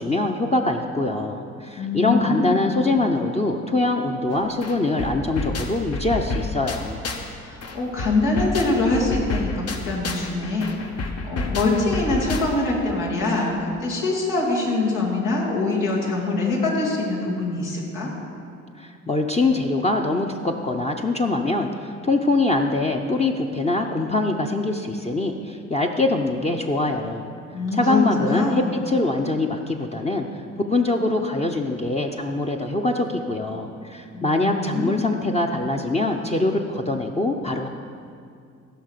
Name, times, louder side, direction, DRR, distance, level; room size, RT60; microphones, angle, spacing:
voice 1, 0.0-7.0 18.8-27.3 27.7-30.3 30.7-37.7, left 2 dB, 20° left, 2 dB, 0.8 m, -23 dB
voice 2, 1.7-2.8 7.4-18.1 27.5-28.7 34.1-35.3, left 2 dB, 85° left, -4 dB, 3.0 m, -24 dB
sound 1, 4.3-4.4 4.6-7.3 7.6-12.8, left 3 dB, 55° left, 1.3 m, -30 dB
15.5 x 5.7 x 6.7 m, 2.3 s
cardioid pair, 90°, 30 cm